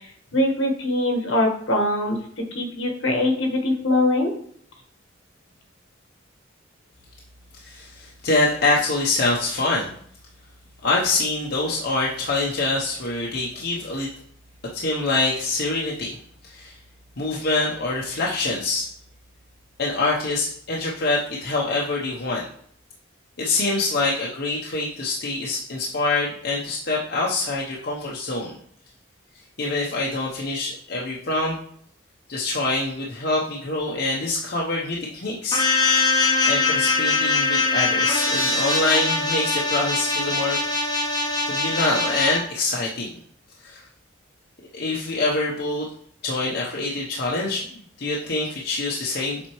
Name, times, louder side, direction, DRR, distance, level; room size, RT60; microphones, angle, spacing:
voice 1, 0.3-4.3, left 1 dB, 75° left, 2 dB, 1.4 m, -22 dB
voice 2, 7.6-9.9 10.8-14.1 14.7-16.2 16.4-16.8 17.2-18.9 19.8-22.4 23.4-28.6 29.6-31.6 32.3-35.6 36.1-40.6 41.5-43.1 43.6-43.8 44.7-45.9 46.2-49.4, left 2 dB, 55° left, -4 dB, 0.9 m, -25 dB
sound 1, 35.5-42.4, left 3 dB, 20° left, 0.9 m, -22 dB
7.4 x 4.2 x 3.1 m, 0.63 s
head